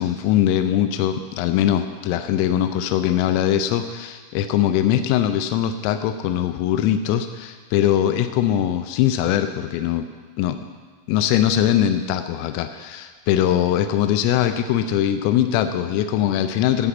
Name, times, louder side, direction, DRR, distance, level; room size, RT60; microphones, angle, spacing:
voice 1, 0.0-10.1 10.4-10.6 11.1-16.9, left 11 dB, 85° left, 8 dB, 3.2 m, -21 dB
13.0 x 6.0 x 8.2 m, 1.5 s
omnidirectional pair, 5.8 m